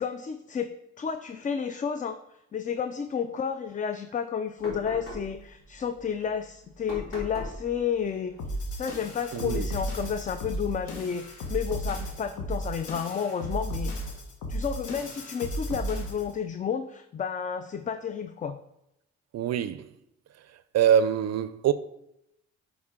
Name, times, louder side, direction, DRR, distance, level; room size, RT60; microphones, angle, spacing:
voice 1, 0.0-2.2 2.5-8.4 8.7-13.9 14.5-18.6, left 7 dB, 25° left, 0.4 m, -31 dB
sound 1, 4.6-12.0, left 1 dB, 45° left, 2.7 m, -44 dB
sound 2, 8.4-16.3, equal, 80° left, 1.4 m, -34 dB
voice 2, 9.3-9.7 19.3-19.8 20.7-21.7, right 9 dB, 60° right, 0.4 m, -24 dB
8.6 x 4.2 x 3.7 m
cardioid pair, 90°, 30 cm